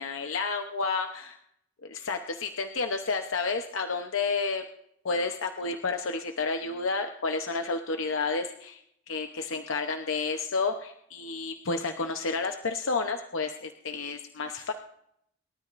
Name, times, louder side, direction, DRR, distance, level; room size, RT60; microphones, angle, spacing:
voice 1, 0.0-1.4 1.9-4.6 5.0-8.8 9.1-14.7, left 4 dB, 85° left, 5 dB, 0.9 m, -30 dB
28.0 x 13.0 x 2.6 m, 0.73 s
head